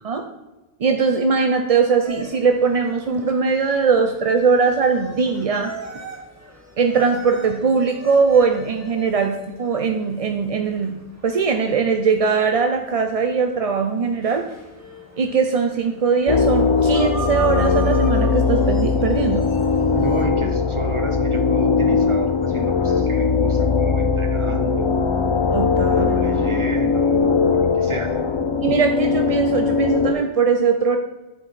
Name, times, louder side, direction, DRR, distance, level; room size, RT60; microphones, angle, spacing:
voice 1, 0.8-5.7 6.8-14.5 15.2-19.5 25.5-26.0 28.6-31.0, right 5 dB, 50° right, 5 dB, 0.4 m, -20 dB
sound 1, 2.0-20.2, right 2 dB, 15° right, 1.8 m, -39 dB
sound 2, 16.3-30.1, left 5 dB, 35° left, 0.5 m, -20 dB
sound 3, 18.0-23.3, right 1 dB, 65° right, 1.8 m, -42 dB
voice 2, 19.9-25.0 25.8-28.3, right 2 dB, 30° right, 5 dB, 0.8 m, -31 dB
10.0 x 4.7 x 4.1 m, 1.1 s
omnidirectional pair, 1.2 m